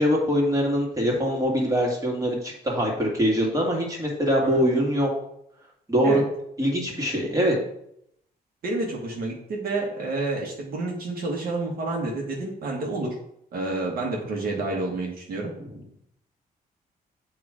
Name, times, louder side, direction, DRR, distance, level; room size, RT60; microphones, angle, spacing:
voice 1, 0.0-5.1 5.9-6.2 6.6-7.6, equal, 20° right, -2 dB, 2.1 m, -23 dB
voice 2, 8.6-13.2 13.5-15.5, right 2 dB, 70° right, -1 dB, 1.5 m, -29 dB
7.4 x 3.1 x 5.0 m, 0.74 s
cardioid pair, 110°, 16 cm